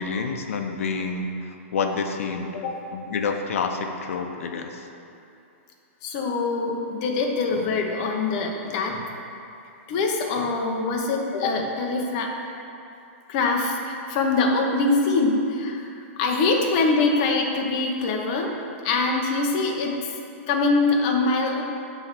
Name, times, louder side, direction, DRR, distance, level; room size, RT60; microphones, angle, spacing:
voice 1, 0.0-2.5 2.9-4.8, left 4 dB, 85° left, 4 dB, 0.5 m, -28 dB
voice 2, 6.0-9.0 9.9-12.3 13.3-15.9 16.2-18.5 18.8-20.0 20.5-21.6, left 3 dB, 30° left, 1 dB, 0.6 m, -23 dB
6.9 x 3.2 x 5.8 m, 2.7 s
supercardioid pair, 175°, 7 cm